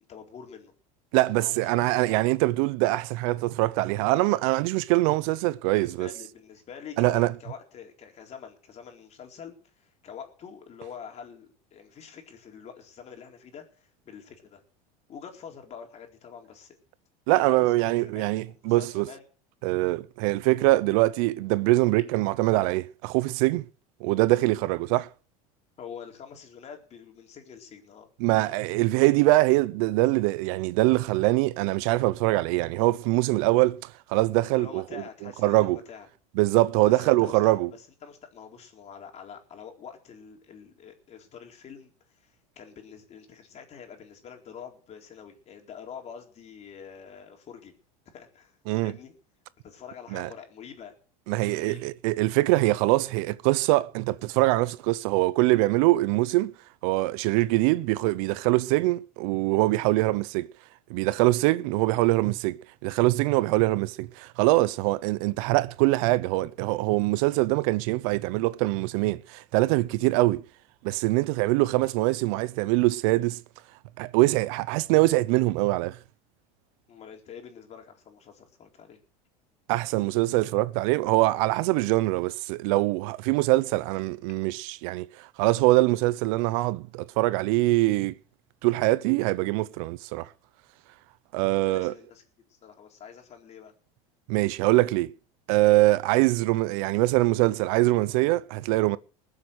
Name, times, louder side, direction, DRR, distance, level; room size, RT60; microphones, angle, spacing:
voice 1, 0.1-0.7 1.3-1.6 1.9-2.2 5.7-14.6 15.1-16.8 17.3-19.2 25.8-28.1 34.5-36.1 36.8-47.7 48.1-49.1 49.6-50.9 51.3-51.8 71.6-71.7 76.9-79.0 91.6-92.2 92.5-93.7, left 7 dB, 35° left, 4.1 m, -46 dB
voice 2, 1.1-6.1 7.0-7.3 17.3-19.1 19.6-23.7 24.0-25.1 28.2-34.8 35.4-35.8 36.4-37.7 48.7-48.9 50.1-50.3 51.3-56.5 56.8-60.5 60.9-70.4 70.8-73.4 74.0-76.0 79.7-88.1 88.6-90.3 91.3-91.9 94.3-95.1 95.5-99.0, right 19 dB, 70° right, 0.7 m, -23 dB
20.5 x 7.5 x 6.4 m
supercardioid pair, 120°, 18 cm